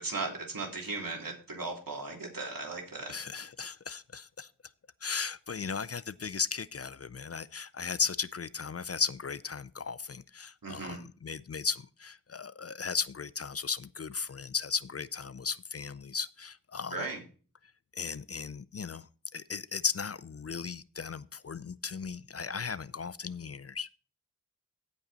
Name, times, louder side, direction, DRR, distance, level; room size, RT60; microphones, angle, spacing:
voice 1, 0.0-3.1 10.6-11.0 16.9-17.2, right 3 dB, 70° right, 3.0 m, -37 dB
voice 2, 3.1-4.5 5.0-17.0 18.0-19.1 19.3-23.9, left 5 dB, 45° left, 0.4 m, -36 dB
15.5 x 5.4 x 4.1 m
wide cardioid pair, 65°, 35 cm